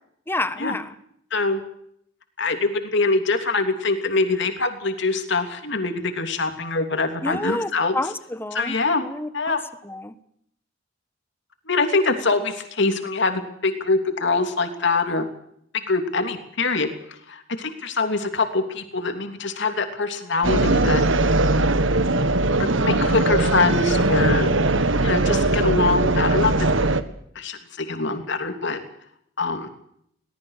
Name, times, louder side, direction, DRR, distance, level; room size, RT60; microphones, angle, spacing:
voice 1, 0.3-0.9 7.2-8.7 9.0-9.6 9.8-10.2 11.9-12.2, left 2 dB, 10° left, 12 dB, 1.3 m, -29 dB
voice 2, 2.4-7.9 8.5-9.0 9.3-9.6 11.7-15.2 15.9-21.0 22.6-24.5 25.0-26.5 27.3-28.8 29.4-29.7, left 3 dB, 65° left, 6 dB, 3.0 m, -24 dB
sound 1, 20.4-27.0, right 2 dB, 70° right, 1.5 m, -20 dB
22.5 x 18.5 x 6.7 m, 0.71 s
head